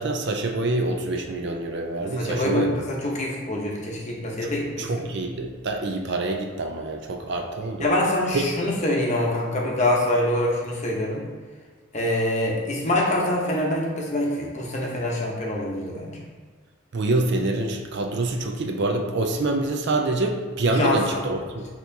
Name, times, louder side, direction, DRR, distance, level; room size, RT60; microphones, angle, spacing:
voice 1, 0.0-2.8 4.5-7.9 8.3-8.5 16.9-21.7, right 2 dB, 55° right, 3 dB, 0.4 m, -26 dB
voice 2, 2.0-5.0 7.8-11.2 11.9-16.2 20.7-21.2, left 1 dB, 35° left, -2 dB, 0.8 m, -25 dB
6.4 x 2.9 x 2.7 m, 1.5 s
head